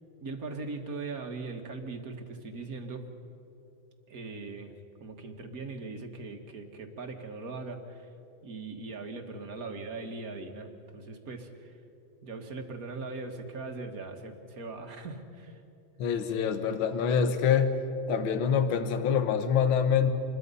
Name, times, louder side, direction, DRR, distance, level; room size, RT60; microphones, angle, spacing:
voice 1, 0.2-3.1 4.1-4.8 5.0-8.1 8.4-11.8 12.2-15.6, right 3 dB, 45° right, 5 dB, 1.9 m, -40 dB
voice 2, 16.0-17.7 18.1-20.1, left 7 dB, 75° left, 9 dB, 1.9 m, -25 dB
27.5 x 21.5 x 5.5 m, 2.8 s
omnidirectional pair, 2.2 m